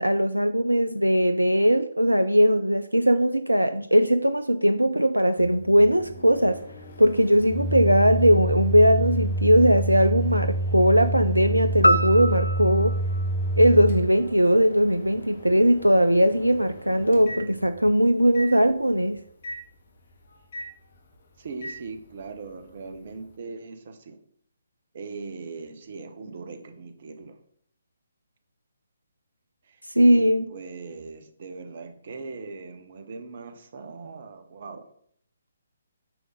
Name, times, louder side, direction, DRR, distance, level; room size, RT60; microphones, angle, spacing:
voice 1, 0.0-6.6 7.0-13.0 13.6-19.2 29.9-30.4, equal, 85° right, 11 dB, 0.4 m, -20 dB
Microwave oven, 5.4-17.9 18.4-18.5 19.4-19.6 20.5-20.7 21.6-21.8, right 1 dB, 50° left, 1.5 m, -30 dB
sound 1, 11.8-14.3, equal, 80° left, 0.5 m, -26 dB
voice 2, 21.4-24.2 24.9-27.4 29.7-29.8 30.1-34.9, right 4 dB, 45° right, 9 dB, 1.0 m, -40 dB
9.0 x 3.8 x 5.4 m, 0.64 s
figure-of-eight pair, 135°, 0 cm